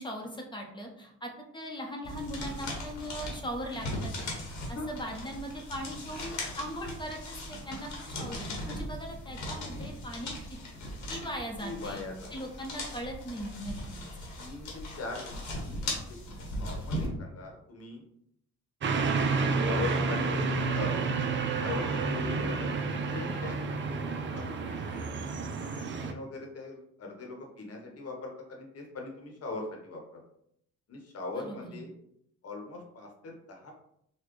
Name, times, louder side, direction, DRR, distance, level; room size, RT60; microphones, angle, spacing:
voice 1, 0.0-10.4 11.1-12.0 12.3-14.0 31.3-31.8, equal, 15° left, 1 dB, 0.8 m, -39 dB
sound 1, 2.0-17.1, left 1 dB, 70° left, 1.2 m, -39 dB
voice 2, 11.6-12.3 14.4-15.8 16.5-18.0 19.3-22.8 23.1-24.0 24.3-24.8 26.0-30.0 30.9-31.9 32.4-33.7, left 3 dB, 55° left, 1 dB, 1.1 m, -40 dB
sound 2, 18.8-26.1, right 4 dB, 40° right, 0.4 m, -30 dB
4.1 x 2.3 x 3.1 m, 0.73 s
cardioid pair, 90°, 30 cm